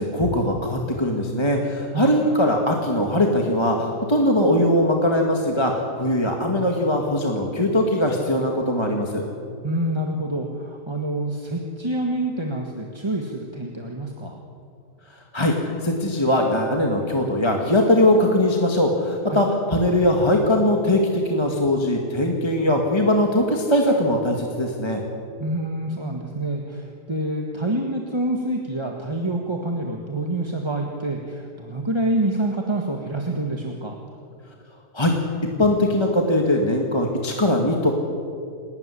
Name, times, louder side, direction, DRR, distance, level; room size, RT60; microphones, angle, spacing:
voice 1, 0.0-9.2 15.3-25.0 34.9-35.2 35.6-37.9, left 1 dB, 15° left, 1 dB, 2.0 m, -21 dB
voice 2, 9.6-14.4 19.3-19.4 25.4-34.0, right 1 dB, 15° right, 1 dB, 1.6 m, -27 dB
28.0 x 13.0 x 9.9 m, 2.3 s
omnidirectional pair, 1.7 m